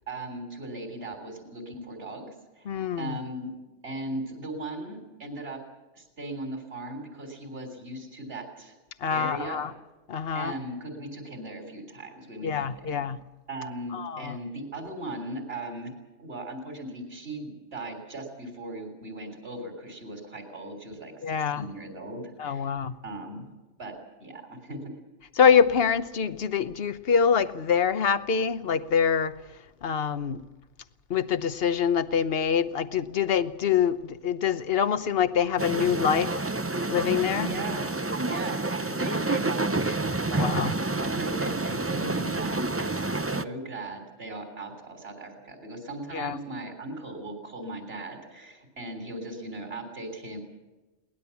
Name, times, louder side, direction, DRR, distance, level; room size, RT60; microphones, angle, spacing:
voice 1, 0.1-2.7 3.0-3.5 3.8-5.6 5.9-8.8 9.1-9.6 10.3-13.0 13.5-15.9 16.2-23.5 23.8-24.8 37.4-37.9 38.2-40.5 41.0-50.4, right 2 dB, 60° right, 5 dB, 3.9 m, -38 dB
voice 2, 2.6-3.2 9.0-9.7 10.1-10.5 12.4-13.2 13.9-14.4 21.2-21.6 22.4-23.0 25.4-29.3 29.8-30.4 31.1-36.4 36.9-37.5 40.4-40.7 46.1-46.4, left 7 dB, 60° left, 12 dB, 1.2 m, -25 dB
sound 1, 35.6-43.4, right 2 dB, 15° right, 0.5 m, -28 dB
22.5 x 19.0 x 7.2 m, 1.1 s
omnidirectional pair, 1.2 m